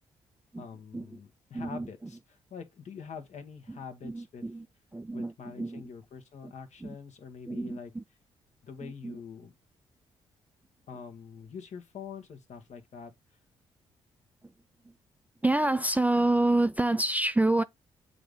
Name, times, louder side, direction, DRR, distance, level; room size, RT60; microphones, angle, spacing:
voice 1, 0.6-4.4 5.1-7.9 8.6-9.5 10.9-13.1, left 6 dB, 55° left, 1.3 m, -45 dB
voice 2, 1.5-1.9 3.7-3.8 4.0-4.7 4.9-5.8 6.4-6.5 6.8-7.0 7.5-8.0 8.8-9.2 15.4-17.6, right 2 dB, 10° right, 0.4 m, -28 dB
7.5 x 2.7 x 5.0 m
hypercardioid pair, 40°, 14 cm